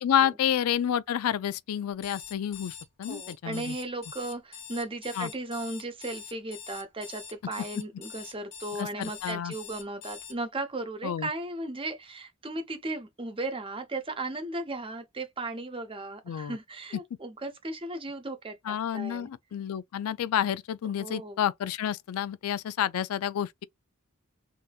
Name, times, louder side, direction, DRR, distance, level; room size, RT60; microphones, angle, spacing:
voice 1, 0.0-3.7 5.2-5.3 8.8-9.5 11.0-11.3 16.3-16.6 18.7-23.6, left 9 dB, 90° left, 0.3 m, -29 dB
Alarm, 1.9-10.3, left 8 dB, 60° left, 1.0 m, -44 dB
voice 2, 3.1-19.3 21.0-21.4, right 2 dB, 25° right, 0.8 m, -36 dB
3.7 x 2.6 x 2.3 m
head